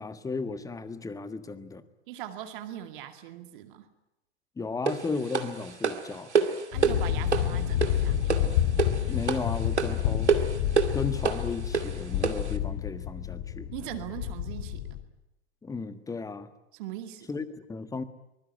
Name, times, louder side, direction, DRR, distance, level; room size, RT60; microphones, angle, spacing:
voice 1, 0.0-1.8 4.6-6.3 9.1-10.4 10.9-13.7 15.6-16.5 17.3-18.0, left 4 dB, 10° left, 13 dB, 1.5 m, -35 dB
voice 2, 2.1-3.9 6.7-8.4 13.7-14.8 16.7-17.3, right 12 dB, 50° right, 7 dB, 2.4 m, -40 dB
sound 1, 4.9-12.5, right 5 dB, 80° right, 2.4 m, -29 dB
sound 2, 6.7-15.0, left 10 dB, 50° left, 2.7 m, -29 dB
24.5 x 21.0 x 9.8 m, 0.89 s
figure-of-eight pair, 105°, 34 cm